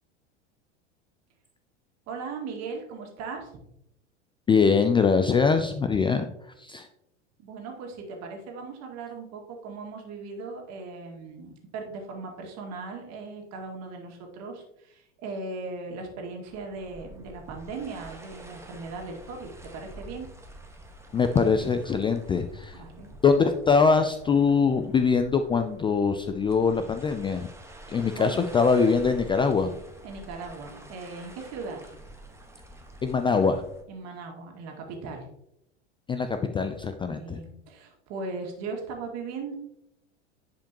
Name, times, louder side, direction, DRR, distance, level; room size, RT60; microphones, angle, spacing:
voice 1, 2.1-3.5 7.4-20.3 22.7-23.1 28.2-28.4 30.0-31.9 33.9-35.3 37.1-39.6, right 4 dB, 50° right, 2 dB, 2.1 m, -38 dB
voice 2, 4.5-6.3 6.6-6.9 21.1-22.8 23.2-27.5 27.9-29.7 33.0-33.6 36.1-37.4, left 5 dB, 15° left, 8 dB, 0.4 m, -23 dB
sound 1, 16.5-33.8, right 1 dB, 10° right, 1.3 m, -47 dB
10.0 x 5.2 x 2.9 m, 0.79 s
hypercardioid pair, 90°, 35 cm